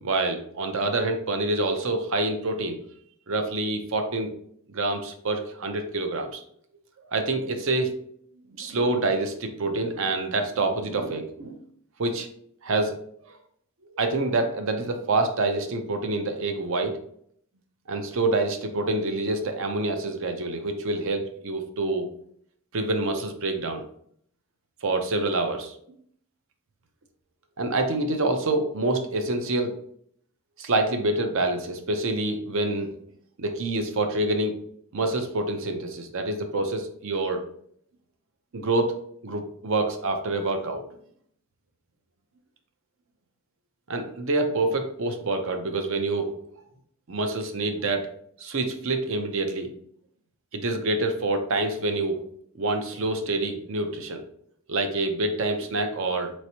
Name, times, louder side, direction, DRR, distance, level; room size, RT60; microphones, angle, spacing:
voice 1, 0.0-2.8 3.3-4.3 4.7-6.4 7.1-7.9 8.6-11.6 12.0-12.3 12.6-13.0 13.9-17.0 17.9-22.1 22.7-23.8 24.8-25.7 27.6-29.7 30.6-32.9 33.4-34.5 34.9-37.4 38.5-39.0 39.2-40.8 43.9-46.4 47.1-48.1 48.4-49.7 50.5-52.2 52.5-54.2 54.7-56.3, right 2 dB, 60° right, 6 dB, 0.6 m, -26 dB
4.1 x 3.1 x 2.8 m, 0.65 s
head